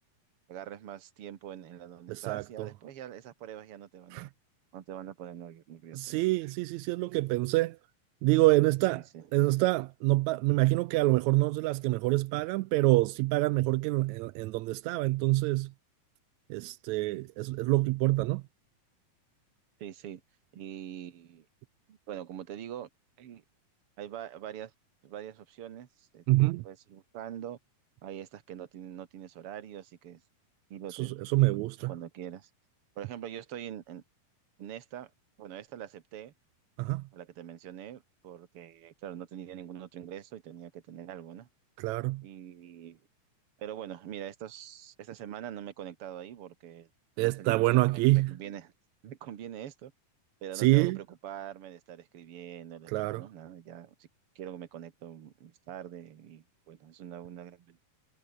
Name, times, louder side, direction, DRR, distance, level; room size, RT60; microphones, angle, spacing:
voice 1, 0.5-4.3 4.7-6.2 8.9-9.3 19.8-20.2 20.5-21.5 21.9-22.9 23.2-23.4 24.0-24.7 25.0-26.2 26.6-27.6 28.0-30.2 30.7-31.1 31.5-32.5 33.0-34.0 34.6-35.1 35.4-36.3 37.1-41.5 42.2-43.0 43.6-46.9 47.2-48.7 49.0-49.9 50.4-54.1 54.4-57.8, right 10 dB, 50° right, 2.1 m, -44 dB
voice 2, 2.1-2.7 4.1-4.3 5.9-7.8 8.2-9.0 9.3-15.7 16.5-18.4 26.3-26.6 31.0-31.9 36.8-37.0 41.8-42.2 47.2-48.3 50.6-51.0 52.9-53.2, right 20 dB, 85° right, 1.6 m, -26 dB
omnidirectional pair, 3.8 m